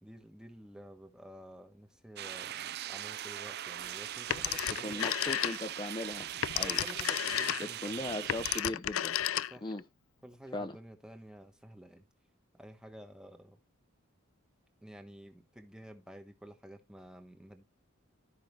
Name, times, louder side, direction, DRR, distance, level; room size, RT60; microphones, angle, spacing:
voice 1, 0.0-5.1 6.6-8.2 9.4-9.7 10.2-12.1 12.5-13.6 14.8-17.6, equal, 5° right, 1.2 m, -51 dB
sound 1, 2.2-8.6, right 11 dB, 50° right, 0.4 m, -40 dB
Telephone, 4.3-5.9 6.2-9.8, left 12 dB, 75° left, 0.4 m, -33 dB
voice 2, 4.8-6.8 7.6-9.2 9.6-9.8 10.5-10.8, left 2 dB, 20° left, 0.6 m, -38 dB
13.0 x 5.7 x 3.3 m
head